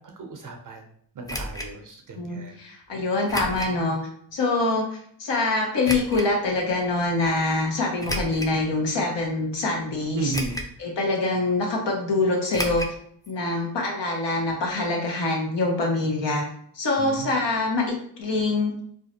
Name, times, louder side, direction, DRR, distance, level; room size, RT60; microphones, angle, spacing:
voice 1, 0.2-0.8 1.2-2.6 10.2-10.6 17.0-17.1, right 4 dB, 45° right, 3 dB, 0.5 m, -34 dB
sound 1, 1.3-1.7 3.3-3.8 4.3-4.4 5.8-6.3 8.0-8.6 9.2-9.3 10.3-10.8 11.1-11.2 12.5-13.0 13.2-13.3 13.6-13.7, equal, 10° left, 0.4 m, -31 dB
voice 2, 2.2-4.0 4.3-10.4 10.8-12.8 13.3-16.4 16.7-18.7, left 2 dB, 70° left, 0 dB, 0.8 m, -25 dB
2.4 x 2.1 x 2.7 m, 0.65 s
supercardioid pair, 45°, 45 cm